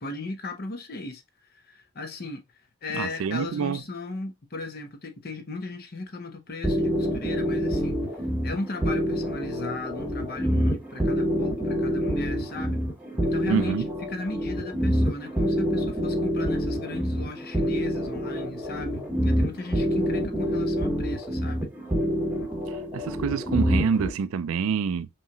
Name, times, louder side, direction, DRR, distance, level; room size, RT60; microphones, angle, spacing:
voice 1, 0.0-1.2 1.5-2.4 2.8-7.9 8.4-12.8 13.2-21.7, left 2 dB, 45° left, 0.7 m, -36 dB
voice 2, 2.9-3.8 13.5-13.9 22.7-25.1, right 6 dB, 70° right, 0.3 m, -27 dB
sound 1, 6.6-24.1, equal, 5° right, 0.9 m, -26 dB
5.4 x 2.9 x 2.2 m
head